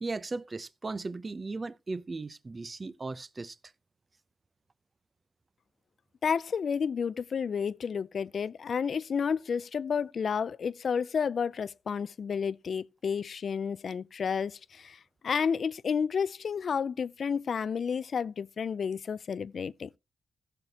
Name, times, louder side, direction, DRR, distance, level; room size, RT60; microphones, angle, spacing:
voice 1, 0.0-3.6, right 3 dB, 30° right, 0.7 m, -37 dB
voice 2, 6.2-20.0, left 6 dB, 55° left, 0.5 m, -31 dB
16.0 x 6.5 x 3.0 m
cardioid pair, 85°, 0 cm